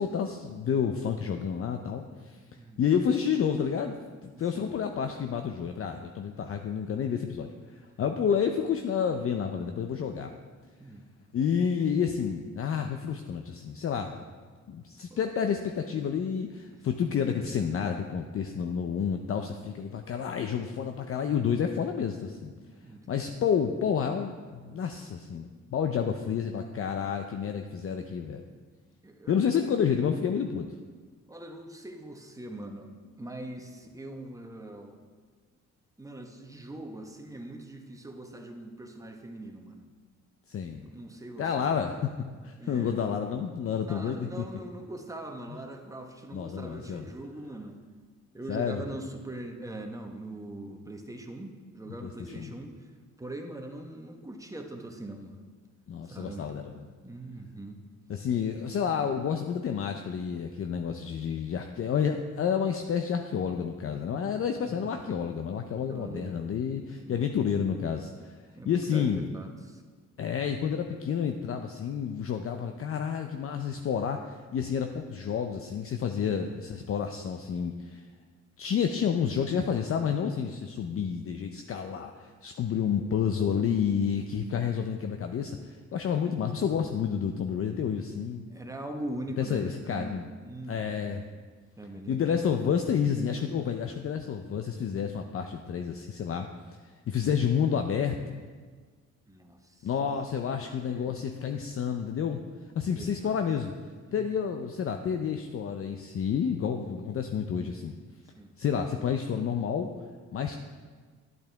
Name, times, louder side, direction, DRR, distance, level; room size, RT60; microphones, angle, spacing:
voice 1, 0.0-2.4 2.8-10.3 11.3-14.2 14.7-22.5 23.1-28.4 29.3-30.7 40.5-40.9 41.4-42.1 42.4-44.4 46.3-47.0 48.5-48.8 52.0-52.1 52.4-52.5 55.9-56.7 58.1-68.4 68.7-69.3 70.2-78.0 78.6-88.4 89.4-90.3 90.7-91.2 92.1-96.5 96.8-98.4 99.8-102.4 102.7-103.7 104.1-107.9 108.6-109.9 110.3-110.6, left 7 dB, 45° left, 5 dB, 0.6 m, -30 dB
voice 2, 4.3-4.7 10.8-11.0 15.1-15.2 22.8-23.2 29.0-29.6 31.3-35.0 36.0-39.9 40.8-41.9 42.6-43.0 43.9-47.8 48.3-52.9 53.2-55.3 56.0-56.4 57.0-57.8 64.6-64.9 65.9-66.4 67.0-67.3 68.5-69.8 82.7-82.8 88.5-90.1 90.4-91.0 91.8-92.4 99.3-99.9 100.8-101.2 102.9-103.4 104.1-104.4 108.4-108.5, right 1 dB, 10° right, 3 dB, 1.1 m, -42 dB
10.5 x 8.7 x 3.5 m, 1.5 s
cardioid pair, 90°, 30 cm